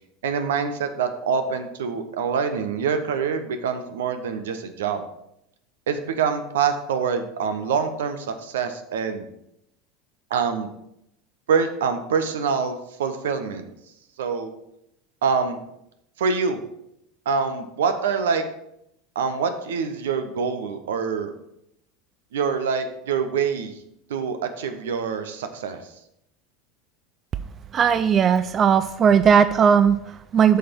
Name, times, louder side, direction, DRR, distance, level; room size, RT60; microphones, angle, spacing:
voice 1, 0.2-5.0 5.9-9.3 10.3-10.7 11.5-13.7 14.2-14.5 15.2-15.6 16.2-16.6 17.2-18.4 19.1-21.3 22.3-23.7 24.1-25.9, right 6 dB, 75° right, 8 dB, 0.9 m, -25 dB
voice 2, 27.7-30.6, right 7 dB, 35° right, 12 dB, 0.4 m, -18 dB
8.4 x 5.8 x 4.5 m, 0.79 s
hypercardioid pair, 80°, 0 cm